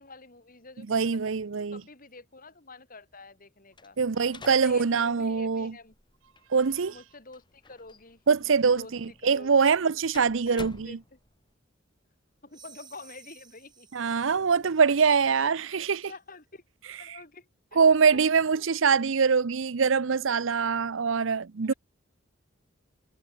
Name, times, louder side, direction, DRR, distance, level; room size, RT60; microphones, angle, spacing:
voice 1, 0.0-1.2 1.7-4.0 4.4-5.9 6.9-9.5 10.5-11.2 12.4-13.9 15.3-15.8 16.1-18.2 18.5-18.9 21.0-21.4 21.7-21.8, left 3 dB, 45° left, 5.7 m, -49 dB
voice 2, 0.9-1.8 4.0-5.7 6.5-6.9 8.3-11.0 13.9-16.1 17.1-17.2 17.8-21.7, right 5 dB, 70° right, 0.6 m, -24 dB
sound 1, 3.7-11.5, left 2 dB, 25° left, 2.8 m, -50 dB
sound 2, 12.5-15.5, right 6 dB, 20° right, 3.4 m, -55 dB
head